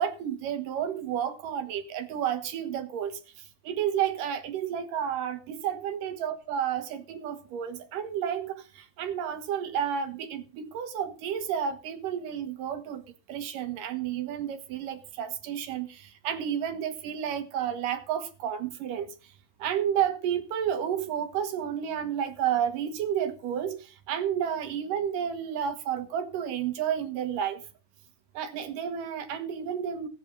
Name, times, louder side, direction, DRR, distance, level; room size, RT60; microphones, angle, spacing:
voice 1, 0.0-3.2 3.6-13.0 13.3-19.1 19.6-27.6 28.3-30.1, right 9 dB, 70° right, 2.8 m, -31 dB
16.0 x 8.5 x 5.3 m
omnidirectional pair, 4.2 m